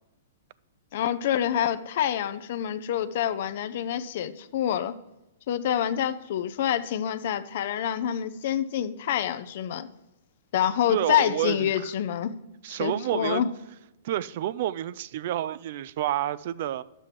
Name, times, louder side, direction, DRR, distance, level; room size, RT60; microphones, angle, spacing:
voice 1, 0.9-4.9 5.5-9.9 10.5-12.4 12.7-13.5, left 10 dB, 60° left, 0.5 m, -27 dB
voice 2, 10.9-11.9 12.6-13.4 14.0-16.8, right 12 dB, 55° right, 0.3 m, -29 dB
12.0 x 7.5 x 3.3 m
hypercardioid pair, 130°, 0 cm